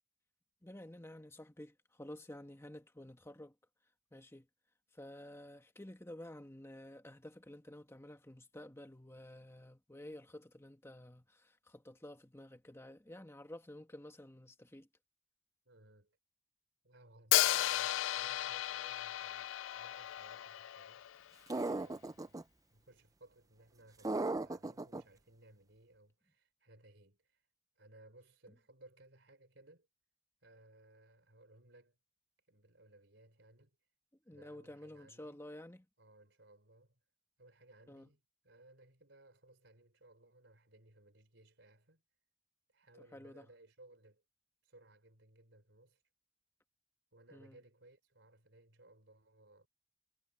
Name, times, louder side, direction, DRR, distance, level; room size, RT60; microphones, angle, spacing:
voice 1, 0.6-3.5 4.1-4.5 4.9-14.9 34.3-35.8 37.9-38.1 43.1-43.5 47.3-47.6, left 1 dB, 15° left, 1.4 m, -51 dB
voice 2, 15.6-16.2 16.8-21.1 21.5-27.4 27.8-29.9 30.4-32.0 32.5-33.8 34.3-35.4 36.0-37.0 37.4-42.0 42.7-44.2 44.6-46.0 47.1-49.7, right 2 dB, 65° right, 5.1 m, -62 dB
Hi-hat, 17.3-21.3, left 14 dB, 80° left, 0.3 m, -34 dB
sound 1, 21.5-22.4 24.0-25.0, right 2 dB, 20° right, 0.5 m, -36 dB
head